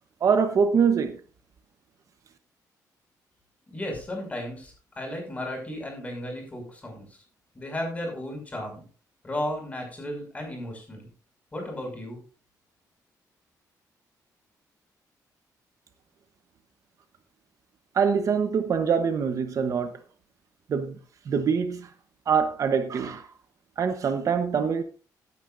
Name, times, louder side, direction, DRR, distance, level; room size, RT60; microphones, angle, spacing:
voice 1, 0.2-1.2 17.9-20.0 20.7-20.9 21.3-21.9 22.3-23.3 23.8-24.8, right 6 dB, 55° right, 1.1 m, -24 dB
voice 2, 3.7-7.2 7.5-8.8 9.2-11.1 11.5-12.2, left 1 dB, 20° left, 6.1 m, -34 dB
16.5 x 9.6 x 2.6 m
cardioid pair, 130°, 7 cm